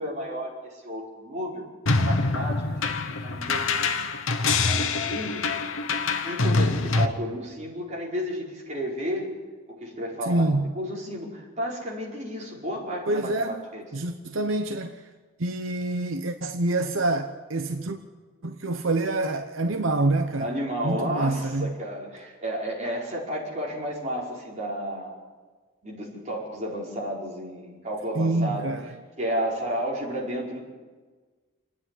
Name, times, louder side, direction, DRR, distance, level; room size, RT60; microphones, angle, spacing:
voice 1, 0.0-1.7 2.0-2.6 3.1-3.8 4.5-5.5 6.2-9.3 9.7-13.8 20.4-25.2 25.8-28.7 29.2-30.6, equal, 35° right, 5.0 m, -32 dB
sound 1, 1.9-7.1, left 3 dB, 80° left, 1.2 m, -25 dB
voice 2, 10.2-10.7 13.1-13.6 13.9-15.1 15.4-18.0 18.4-20.5 20.8-21.7 28.1-28.9, right 2 dB, 75° right, 0.9 m, -26 dB
27.5 x 9.8 x 10.0 m
head